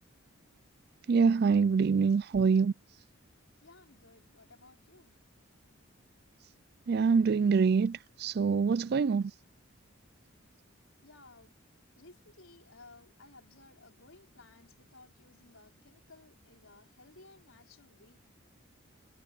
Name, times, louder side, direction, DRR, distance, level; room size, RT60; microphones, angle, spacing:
voice 1, 1.1-2.7 6.9-9.3, right 5 dB, 50° right, 0.3 m, -25 dB
voice 2, 3.6-5.2 10.4-10.5 11.0-11.6 12.0-18.2, left 3 dB, 75° left, 4.6 m, -57 dB
head